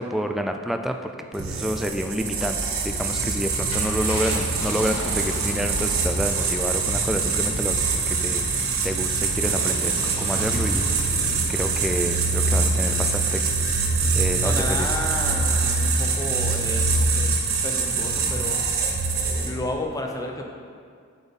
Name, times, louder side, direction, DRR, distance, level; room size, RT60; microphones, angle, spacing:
voice 1, 0.0-11.1 11.5-13.5 14.1-14.9, equal, ahead, 5 dB, 0.4 m, -29 dB
sound 1, 1.3-19.7, right 4 dB, 70° right, 1.1 m, -24 dB
Car, 3.5-14.4 14.9-15.0 17.0-17.2, left 1 dB, 70° left, 1.5 m, -38 dB
voice 2, 14.4-17.3 17.6-18.6 19.4-20.5, left 1 dB, 15° left, 2 dB, 0.7 m, -32 dB
7.9 x 7.2 x 4.1 m, 2.1 s
head